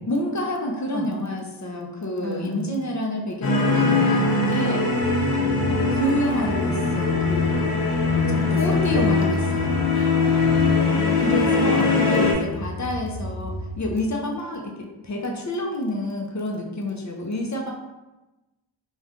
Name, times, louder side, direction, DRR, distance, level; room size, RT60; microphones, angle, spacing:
voice 1, 0.1-4.9 5.9-7.8 8.1-9.8 11.1-14.7 15.0-17.7, left 1 dB, 35° left, 0 dB, 0.6 m, -28 dB
voice 2, 2.2-2.7 3.7-4.7 8.2-9.0 9.3-9.4 9.9-11.9, equal, 20° right, -2 dB, 0.5 m, -33 dB
sound 1, 3.4-12.3, left 4 dB, 80° left, 0.7 m, -21 dB
sound 2, 5.0-13.9, equal, 45° right, 1.0 m, -33 dB
2.6 x 2.3 x 3.5 m, 1.1 s
cardioid pair, 45°, 49 cm